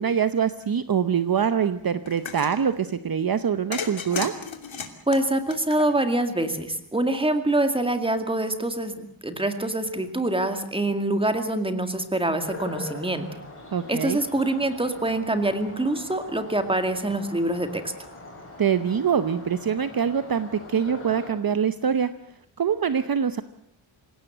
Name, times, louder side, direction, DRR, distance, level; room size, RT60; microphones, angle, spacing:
voice 1, 0.0-4.3 13.7-14.2 18.6-22.1 22.6-23.4, right 7 dB, 45° right, 11 dB, 0.9 m, -24 dB
sound 1, 2.1-2.6 3.7-6.2, left 6 dB, 70° left, 2.9 m, -34 dB
voice 2, 5.1-13.2 13.9-17.9, right 1 dB, 10° right, 7 dB, 2.2 m, -25 dB
sound 2, 12.4-21.3, left 2 dB, 25° left, 7.1 m, -42 dB
27.0 x 17.0 x 8.0 m, 0.69 s
wide cardioid pair, 180°, 48 cm